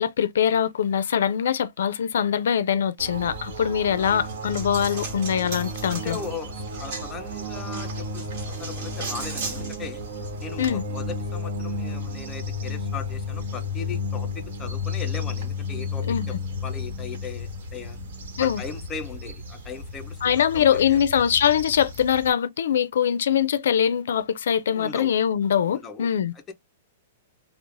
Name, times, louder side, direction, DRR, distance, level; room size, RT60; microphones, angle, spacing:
voice 1, 0.0-6.2 10.6-10.8 16.1-16.2 18.4-18.6 20.2-26.3, left 8 dB, 85° left, 0.4 m, -23 dB
sound 1, 3.0-22.3, left 3 dB, 70° right, 1.0 m, -33 dB
Coin (dropping), 4.0-10.7, right 3 dB, 45° right, 1.3 m, -38 dB
voice 2, 5.9-10.0 10.4-16.0 16.6-18.0 18.4-21.0 24.7-25.1 25.7-26.1 26.3-26.5, left 5 dB, 15° left, 0.4 m, -38 dB
3.0 x 2.0 x 2.5 m
supercardioid pair, 165°, 0 cm